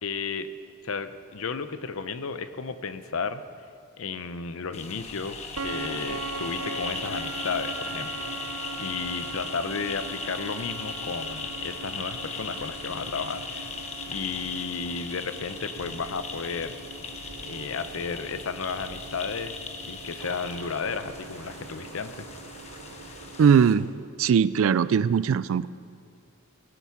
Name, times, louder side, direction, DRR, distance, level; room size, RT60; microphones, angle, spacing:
voice 1, 0.0-0.5 0.8-3.4 4.0-8.5 8.8-13.7 14.1-16.7 17.4-19.6 19.9-22.3, left 5 dB, 70° left, 12 dB, 0.6 m, -33 dB
sound 1, 4.7-23.7, left 4 dB, 30° left, 0.9 m, -38 dB
sound 2, 5.6-23.9, right 4 dB, 85° right, 0.7 m, -41 dB
voice 2, 23.4-23.9 24.2-25.7, right 7 dB, 65° right, 18 dB, 0.3 m, -20 dB
16.0 x 8.3 x 5.8 m, 2.3 s
head